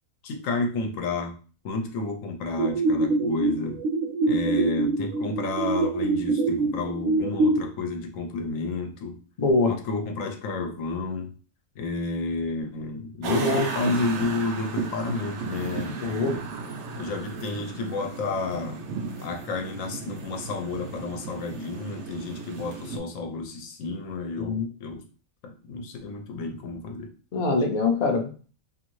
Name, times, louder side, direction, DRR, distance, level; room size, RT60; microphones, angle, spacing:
voice 1, 0.2-1.3 1.6-3.8 4.3-9.2 9.7-11.3 11.8-16.4 17.0-18.8 19.2-25.0 25.4-27.1, left 3 dB, 75° left, 4 dB, 1.0 m, -31 dB
sound 1, 2.6-7.6, right 3 dB, 85° right, 1.1 m, -25 dB
voice 2, 9.4-9.7 13.3-13.7 15.9-16.3 24.4-24.7 27.3-28.5, left 3 dB, 50° left, 2 dB, 0.5 m, -24 dB
sound 2, 13.2-23.0, right 5 dB, 65° right, 0.8 m, -35 dB
2.7 x 2.6 x 3.0 m, 0.38 s
omnidirectional pair, 1.4 m